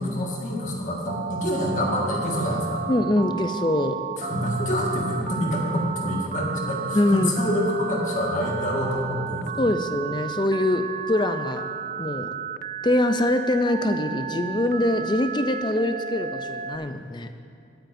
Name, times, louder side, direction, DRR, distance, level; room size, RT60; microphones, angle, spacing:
voice 1, 0.0-2.8 4.2-9.6, left 1 dB, 40° left, -2 dB, 1.6 m, -26 dB
Telephone, 1.1-16.8, right 7 dB, 45° right, 0.3 m, -33 dB
voice 2, 2.9-4.0 6.9-7.3 9.6-11.6 12.0-12.3 12.8-17.3, left 1 dB, 25° left, 8 dB, 0.5 m, -23 dB
18.5 x 9.1 x 2.6 m, 2.4 s
head